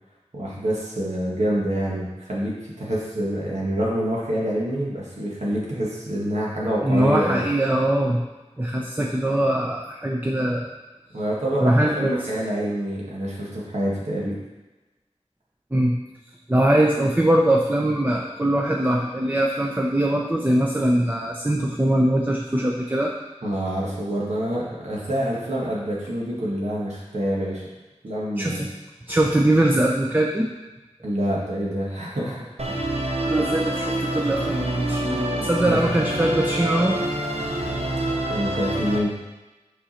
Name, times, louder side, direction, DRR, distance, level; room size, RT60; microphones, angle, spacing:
voice 1, 0.3-7.4 11.1-14.4 23.4-27.6 28.0-28.6 31.0-32.8 35.3-36.0 38.3-39.1, equal, 80° right, -6 dB, 1.6 m, -27 dB
voice 2, 6.8-8.2 8.6-10.7 11.6-12.2 15.7-15.9 16.5-23.1 28.4-28.7 29.1-30.5 33.2-36.9, right 1 dB, 15° right, -1 dB, 0.6 m, -21 dB
Musical instrument, 32.6-39.0, right 1 dB, 60° right, 0.9 m, -26 dB
5.4 x 5.0 x 4.3 m, 1.1 s
wide cardioid pair, 45°, 12 cm